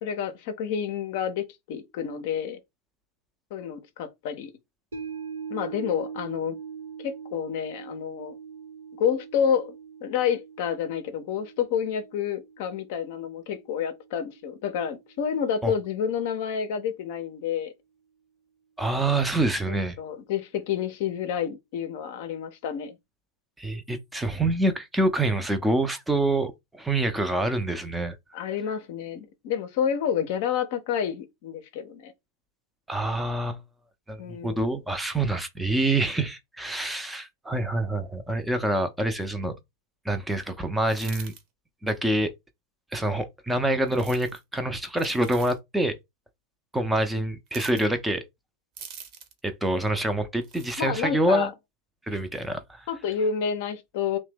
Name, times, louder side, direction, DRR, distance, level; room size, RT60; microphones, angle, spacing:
voice 1, 0.0-2.6 3.5-4.5 5.5-6.6 7.0-8.4 9.0-9.8 10.0-17.7 20.0-23.0 28.3-32.1 34.2-34.6 50.8-51.5 52.9-54.2, left 8 dB, 50° left, 0.5 m, -29 dB
sound 1, 4.9-15.3 15.7-15.8, right 6 dB, 70° right, 0.9 m, -42 dB
voice 2, 18.8-20.0 23.6-28.2 32.9-33.6 34.1-39.5 40.1-41.3 41.8-42.3 42.9-45.9 46.7-48.2 49.4-51.5 52.1-52.9, right 1 dB, 5° right, 0.5 m, -26 dB
sound 2, 40.8-41.4 43.9-44.4 45.0-45.6 47.5-47.9 48.8-49.4 50.4-50.8, right 7 dB, 40° right, 0.8 m, -44 dB
2.7 x 2.1 x 3.3 m
figure-of-eight pair, 90°, 0 cm